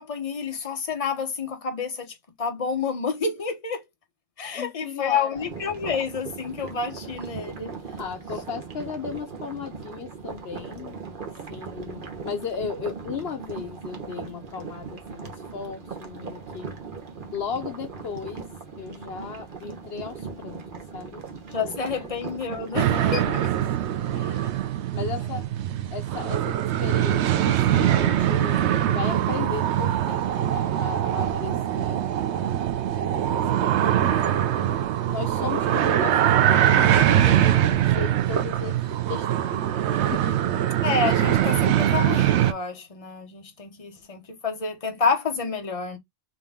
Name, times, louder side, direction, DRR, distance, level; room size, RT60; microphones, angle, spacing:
voice 1, 0.0-3.8 4.4-7.7 21.5-23.5 24.2-24.4 40.8-46.0, left 5 dB, 35° left, 1.0 m, -29 dB
voice 2, 4.5-5.5 8.0-16.7 17.3-18.4 18.8-20.6 20.9-21.2 21.6-21.7 22.7-23.4 23.8-24.3 24.9-25.5 25.9-32.5 33.2-34.2 34.6-34.7 35.1-40.4, left 6 dB, 65° left, 0.9 m, -36 dB
sound 1, 5.3-24.0, right 5 dB, 50° right, 1.1 m, -39 dB
sound 2, 22.7-42.5, right 11 dB, 90° right, 0.9 m, -22 dB
3.7 x 2.9 x 3.4 m
omnidirectional pair, 1.1 m